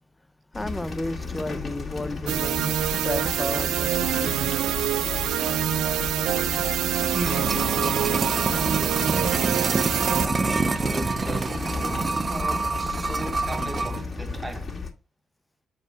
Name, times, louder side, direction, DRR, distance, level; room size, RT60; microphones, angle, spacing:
sound 1, 0.5-14.9, left 4 dB, 45° left, 2.3 m, -34 dB
voice 1, 0.5-4.6, left 1 dB, 10° left, 0.7 m, -33 dB
sound 2, 2.3-10.3, right 12 dB, 85° right, 0.4 m, -26 dB
sound 3, 6.8-14.0 14.3-14.4, right 4 dB, 35° right, 0.6 m, -27 dB
voice 2, 7.0-9.8 10.2-14.7, right 2 dB, 15° right, 1.1 m, -37 dB
8.0 x 4.7 x 3.4 m
cardioid pair, 80°, 0 cm